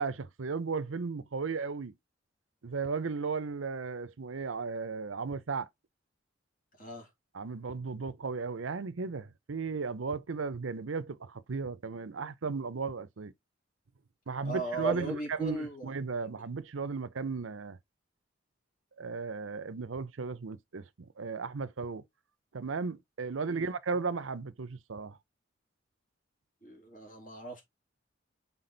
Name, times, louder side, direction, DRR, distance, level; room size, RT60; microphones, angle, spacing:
voice 1, 0.0-1.9 2.6-5.7 7.3-13.3 14.3-17.8 19.0-22.0 22.5-25.2, right 4 dB, 85° right, 0.7 m, -35 dB
voice 2, 6.8-7.1 14.4-15.9 23.5-23.7 26.6-27.6, right 3 dB, 45° left, 3.1 m, -37 dB
6.0 x 4.1 x 3.9 m
head